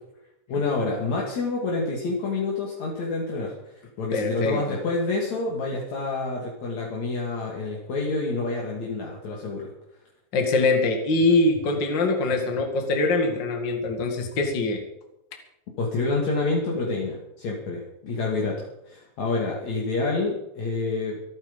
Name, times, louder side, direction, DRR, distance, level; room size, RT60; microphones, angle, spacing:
voice 1, 0.5-9.7 15.8-21.2, left 3 dB, 60° left, -2 dB, 3.6 m, -28 dB
voice 2, 4.1-4.8 10.3-14.8, left 2 dB, 40° left, 4 dB, 2.7 m, -23 dB
26.0 x 9.1 x 5.4 m, 0.84 s
omnidirectional pair, 3.6 m